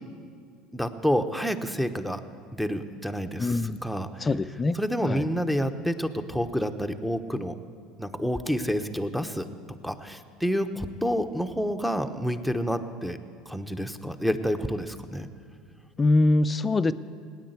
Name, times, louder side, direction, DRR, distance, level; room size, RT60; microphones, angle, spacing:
voice 1, 0.7-2.2 2.6-4.3 4.7-7.5 8.0-9.4 9.8-13.2 13.5-15.3, equal, ahead, 9 dB, 1.0 m, -28 dB
voice 2, 3.4-3.8 4.2-4.8 5.1-5.2 16.0-16.9, left 2 dB, 25° left, 13 dB, 0.6 m, -23 dB
18.5 x 9.6 x 8.1 m, 2.2 s
supercardioid pair, 90°, 0 cm